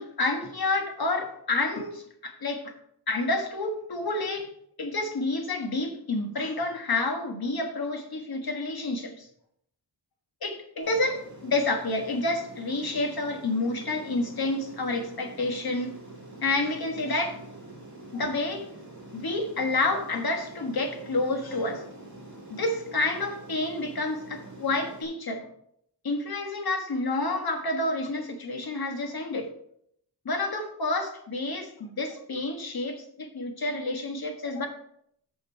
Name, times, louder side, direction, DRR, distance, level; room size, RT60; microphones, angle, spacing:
voice 1, 0.0-2.7 3.1-4.5 4.8-9.3 10.4-15.9 16.4-17.4 18.1-18.7 19.1-21.8 22.5-25.5 26.0-29.5 30.2-34.7, left 2 dB, 50° left, 4 dB, 1.5 m, -29 dB
Aircraft, 10.8-25.0, right 2 dB, 35° right, 2.5 m, -46 dB
8.6 x 6.4 x 4.5 m, 0.70 s
wide cardioid pair, 155°, 46 cm